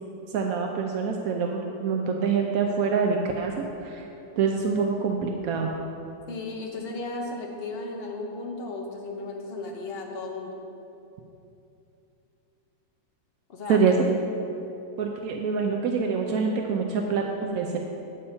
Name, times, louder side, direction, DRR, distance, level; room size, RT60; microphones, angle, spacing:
voice 1, 0.3-4.0 4.4-5.7 13.7-14.2 15.0-17.8, right 5 dB, 75° right, 2 dB, 0.8 m, -25 dB
voice 2, 6.3-10.6 13.5-13.8, left 3 dB, 45° left, 1 dB, 0.8 m, -35 dB
8.5 x 7.0 x 4.3 m, 2.8 s
omnidirectional pair, 2.1 m